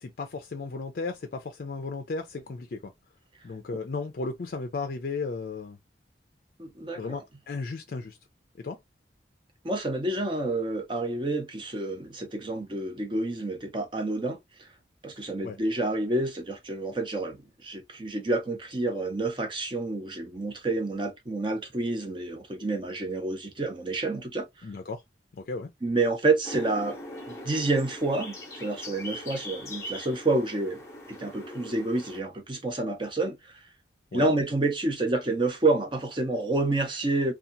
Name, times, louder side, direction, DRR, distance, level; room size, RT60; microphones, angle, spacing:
voice 1, 0.0-2.9 3.4-5.8 7.0-8.2 8.6-8.8 15.4-15.6 24.6-25.0 25.3-25.7 34.1-34.3, left 3 dB, 50° left, 0.4 m, -35 dB
voice 2, 6.6-7.2 9.6-14.7 15.0-24.7 25.8-27.0 27.3-30.8 31.1-33.6 34.1-37.3, right 2 dB, 25° right, 0.6 m, -29 dB
sound 1, 26.4-32.2, left 1 dB, 15° left, 0.8 m, -41 dB
2.7 x 2.3 x 2.5 m
head